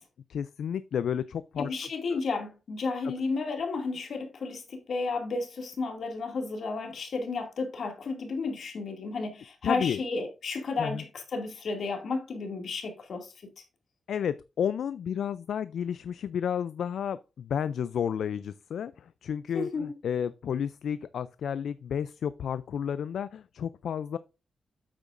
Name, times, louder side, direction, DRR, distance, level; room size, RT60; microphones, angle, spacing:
voice 1, 0.3-1.7 2.1-2.2 9.6-10.0 10.8-11.0 14.1-24.2, left 8 dB, 80° left, 0.3 m, -31 dB
voice 2, 1.6-13.3 19.5-19.9, left 4 dB, 65° left, 2.3 m, -32 dB
8.6 x 8.2 x 2.5 m
wide cardioid pair, 115°, 0 cm